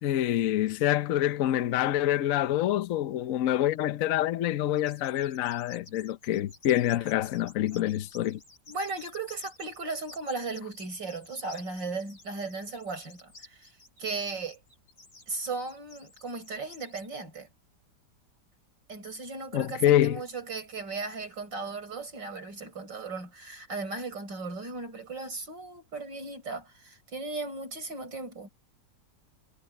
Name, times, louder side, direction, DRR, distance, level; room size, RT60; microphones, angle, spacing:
voice 1, 0.0-8.4 19.5-20.2, left 13 dB, 60° left, 1.0 m, -26 dB
sound 1, 4.8-17.1, left 2 dB, 85° left, 8.6 m, -53 dB
voice 2, 8.7-13.7 14.0-14.6 15.3-17.5 18.9-28.5, right 3 dB, 80° right, 7.0 m, -36 dB
omnidirectional pair, 1.9 m